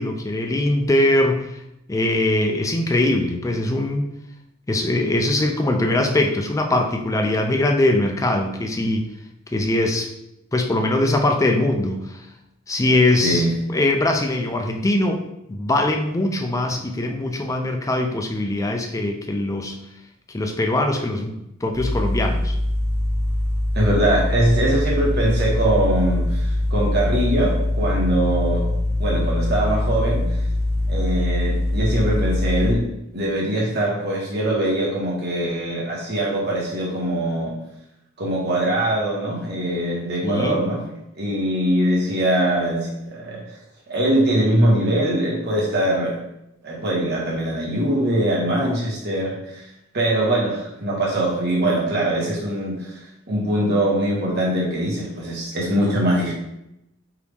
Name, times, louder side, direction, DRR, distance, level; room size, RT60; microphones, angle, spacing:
voice 1, 0.0-1.6 1.9-4.0 4.7-9.1 9.5-10.1 10.5-12.3 12.7-13.4 13.7-15.2 15.5-19.8 20.3-21.3 21.6-22.5 40.2-40.6, left 1 dB, 15° left, 3 dB, 0.4 m, -21 dB
sound 1, 21.7-32.7, left 1 dB, 80° right, 0.7 m, -23 dB
voice 2, 23.7-28.6 29.0-30.2 30.9-32.9 33.1-37.6 38.2-40.8 41.2-43.4 43.9-46.2 46.6-49.7 49.9-53.0 53.3-56.3, right 1 dB, 55° right, -3 dB, 1.3 m, -22 dB
4.7 x 2.6 x 3.5 m, 0.85 s
head